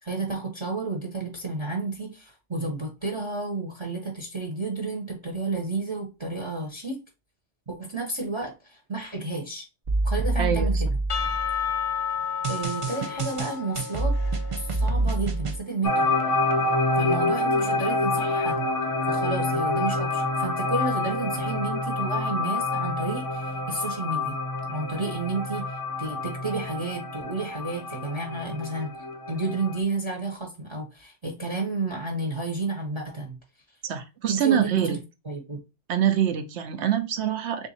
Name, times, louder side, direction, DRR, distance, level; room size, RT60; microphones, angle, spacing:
voice 1, 0.0-7.0 7.7-9.7 10.0-10.9 12.5-14.2 14.5-16.2 16.9-18.7 19.1-24.4 24.7-28.9 29.3-33.4 34.3-35.0 35.3-35.6, right 3 dB, 30° right, 0.8 m, -31 dB
sound 1, 9.9-11.7 12.4-15.6, right 2 dB, 45° right, 0.4 m, -26 dB
voice 2, 10.4-10.8 33.8-35.0 35.9-37.7, right 9 dB, 70° right, 0.9 m, -25 dB
Percussion / Church bell, 11.1-15.2, left 7 dB, 65° left, 0.8 m, -31 dB
sound 2, 15.8-29.8, left 2 dB, 20° left, 0.6 m, -27 dB
3.5 x 2.6 x 4.0 m
omnidirectional pair, 1.2 m